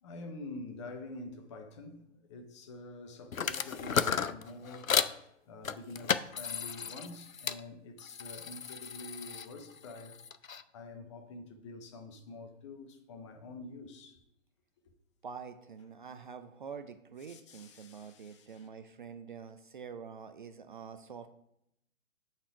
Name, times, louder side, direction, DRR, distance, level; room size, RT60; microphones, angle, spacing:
voice 1, 0.0-10.2 10.7-14.2 17.3-18.7, left 2 dB, 25° left, 0.7 m, -47 dB
sound 1, 3.3-5.2 5.6-7.6 8.0-10.6, left 7 dB, 85° left, 0.6 m, -34 dB
voice 2, 15.2-21.3, right 6 dB, 40° right, 0.5 m, -46 dB
8.6 x 4.5 x 4.8 m
figure-of-eight pair, 125°, 40 cm